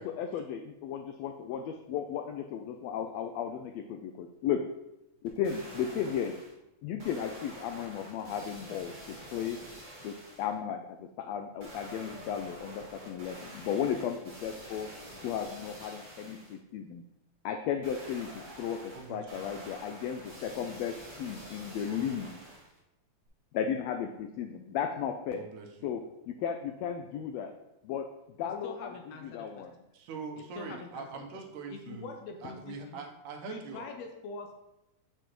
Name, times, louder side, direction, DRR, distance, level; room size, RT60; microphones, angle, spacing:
voice 1, 0.0-4.6 5.2-6.4 6.8-9.6 10.0-14.9 15.2-17.0 17.4-22.4 23.5-25.5 25.8-27.5 27.8-28.1 28.4-29.7, left 8 dB, 90° left, 6 dB, 1.4 m, -35 dB
sound 1, 5.3-6.6 7.0-10.6 11.6-16.6 17.8-22.8 23.3-23.4, right 1 dB, 30° right, 1.9 m, -48 dB
voice 2, 18.9-19.5 21.9-22.5 25.4-25.9 29.9-33.9, right 5 dB, 90° right, 3 dB, 2.4 m, -43 dB
voice 3, 28.4-29.8 30.6-31.1 31.7-33.0 33.4-34.5, left 4 dB, 75° left, 4 dB, 1.7 m, -44 dB
7.6 x 6.7 x 3.0 m, 0.90 s
omnidirectional pair, 3.5 m